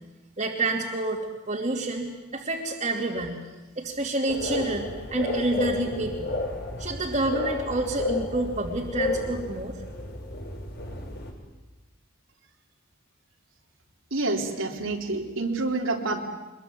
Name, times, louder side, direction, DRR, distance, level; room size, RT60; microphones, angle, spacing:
voice 1, 0.4-1.2 1.5-3.4 3.8-6.3 6.8-9.8, right 2 dB, 35° right, -5 dB, 2.9 m, -28 dB
sound 1, 4.3-11.3, left 2 dB, 55° left, 6.0 m, -32 dB
voice 2, 14.1-16.2, right 2 dB, 85° right, 1 dB, 3.5 m, -28 dB
24.5 x 22.0 x 9.5 m, 1.1 s
head